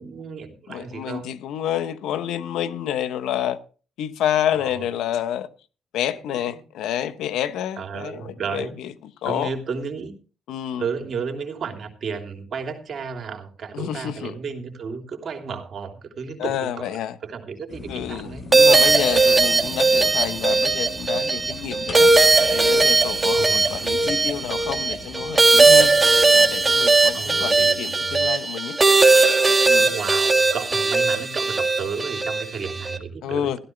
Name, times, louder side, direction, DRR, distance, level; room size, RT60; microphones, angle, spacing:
voice 1, 0.0-1.3 4.6-4.8 7.8-8.8 9.2-10.1 10.8-18.4 19.6-19.8 23.3-24.2 27.1-28.3 29.8-33.6, right 5 dB, 50° right, 3.1 m, -33 dB
voice 2, 0.7-3.6 4.0-5.5 5.9-8.9 9.2-9.5 10.5-10.9 13.7-14.3 16.4-17.2 17.9-22.1 22.5-25.9 26.3-28.8 29.7-29.9 33.2-33.6, left 10 dB, 85° left, 1.0 m, -28 dB
sound 1, 17.7-27.8, left 3 dB, 45° left, 3.0 m, -41 dB
sound 2, 18.5-33.0, right 3 dB, 20° right, 1.7 m, -18 dB
16.0 x 13.0 x 3.3 m
cardioid pair, 90°, 0 cm